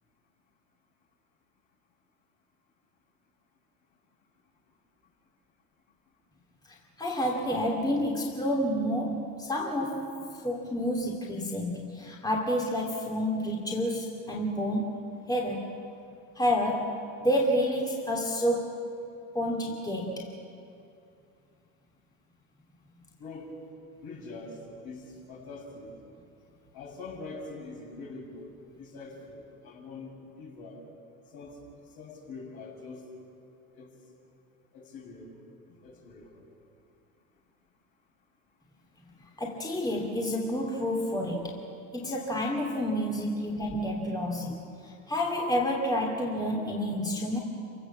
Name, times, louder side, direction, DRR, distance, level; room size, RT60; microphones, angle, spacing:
voice 1, 6.7-15.0 15.3-15.7 16.3-18.9 19.3-20.3 39.4-41.6 41.9-47.4, equal, 10° left, -2 dB, 2.9 m, -29 dB
voice 2, 23.2-23.5 24.0-25.9 26.7-28.5 28.8-30.8 31.3-31.6 31.9-33.1 33.7-33.9 34.7-35.3 35.7-36.4, left 3 dB, 55° left, -2 dB, 7.6 m, -44 dB
27.5 x 17.5 x 7.4 m, 2.5 s
hypercardioid pair, 85°, 43 cm